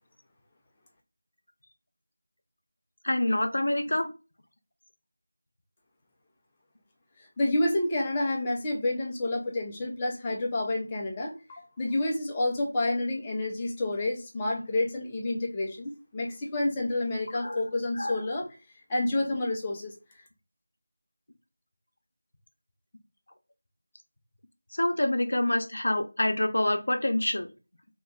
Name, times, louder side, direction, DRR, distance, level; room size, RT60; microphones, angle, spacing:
voice 1, 3.0-4.1 17.4-17.6 18.0-18.2 24.8-27.5, left 1 dB, 75° left, 6 dB, 0.7 m, -26 dB
voice 2, 7.4-18.5 18.9-19.9, left 2 dB, 15° left, -1 dB, 0.6 m, -29 dB
2.9 x 2.4 x 3.5 m, 0.30 s
figure-of-eight pair, 175°, 0 cm